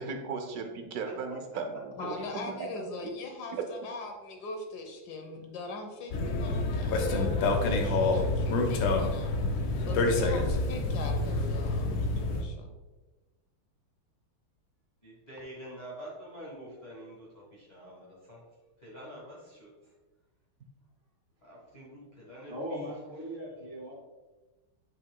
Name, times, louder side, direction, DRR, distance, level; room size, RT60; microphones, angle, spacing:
voice 1, 0.0-2.2 3.5-3.6, right 5 dB, 75° right, 5 dB, 0.9 m, -36 dB
voice 2, 2.0-9.3 9.9-12.7, left 3 dB, 60° left, 4 dB, 1.4 m, -41 dB
sound 1, 6.1-12.4, left 2 dB, 80° left, 1.6 m, -27 dB
voice 3, 15.0-18.4 18.8-19.9 21.4-22.9, right 1 dB, 25° left, -5 dB, 1.3 m, -46 dB
voice 4, 22.5-23.9, equal, 30° right, -6 dB, 2.3 m, -38 dB
8.1 x 6.0 x 2.2 m, 1.2 s
omnidirectional pair, 2.3 m